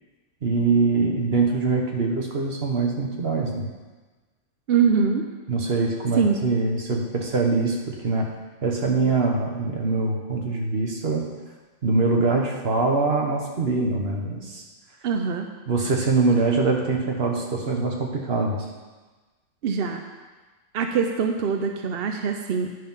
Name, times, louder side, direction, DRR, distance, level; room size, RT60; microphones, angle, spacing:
voice 1, 0.4-3.7 5.5-8.3 8.6-11.3 11.8-14.6 15.7-18.7, right 3 dB, 45° right, 1 dB, 1.4 m, -23 dB
voice 2, 4.7-5.2 6.2-6.4 15.0-15.5 19.6-20.0 20.7-22.7, right 6 dB, 60° right, 4 dB, 0.6 m, -23 dB
10.0 x 5.8 x 5.5 m, 1.3 s
omnidirectional pair, 1.6 m